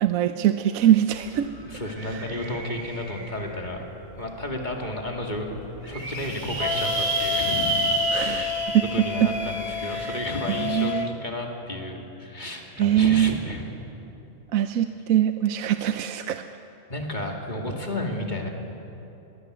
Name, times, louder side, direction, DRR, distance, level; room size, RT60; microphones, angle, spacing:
voice 1, 0.0-1.6 8.1-8.8 9.9-10.1 10.6-11.1 12.8-13.3 14.5-16.4, right 11 dB, 75° right, 9 dB, 1.1 m, -22 dB
sound 1, 1.1-1.2 1.5-3.6 4.2-4.3 4.7-4.8 5.0-5.1 5.6-10.2, right 3 dB, 60° right, 4.9 m, -30 dB
voice 2, 1.3-3.8 4.2-8.5 8.9-10.9 11.2-13.6 16.9-18.5, left 1 dB, 30° left, 1 dB, 2.4 m, -32 dB
Wind instrument woodwind instrument, 6.6-11.1, left 8 dB, 90° left, 1.6 m, -30 dB
22.0 x 18.5 x 8.1 m, 3.0 s
omnidirectional pair, 1.5 m